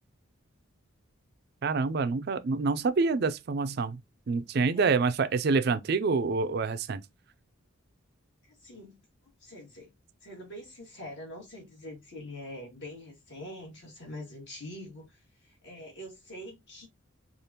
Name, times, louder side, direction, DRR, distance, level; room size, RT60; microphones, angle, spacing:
voice 1, 1.6-4.0 4.3-7.0, right 4 dB, 50° right, 0.4 m, -27 dB
voice 2, 8.4-9.0 9.4-9.9 10.2-16.9, left 1 dB, 55° left, 1.7 m, -44 dB
5.0 x 2.4 x 2.8 m
head